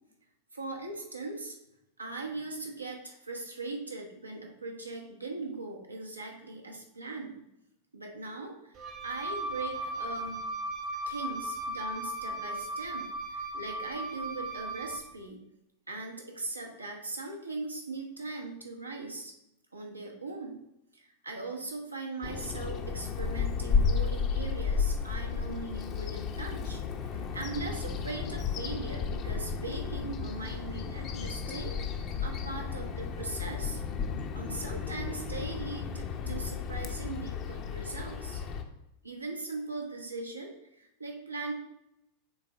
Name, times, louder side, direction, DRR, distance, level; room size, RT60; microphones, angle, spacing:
voice 1, 0.5-1.6 2.0-7.4 7.9-10.4 11.1-15.4 15.9-19.3 19.7-20.6 20.9-33.8 34.3-38.4 39.0-41.5, right 3 dB, 80° right, 1 dB, 1.2 m, -40 dB
Wind instrument woodwind instrument, 8.7-15.1, right 1 dB, 35° right, 1.1 m, -37 dB
Bird vocalization bird call bird song, 22.2-38.6, left 6 dB, 35° left, 0.7 m, -33 dB
9.4 x 3.8 x 3.4 m, 0.83 s
figure-of-eight pair, 90°, 0 cm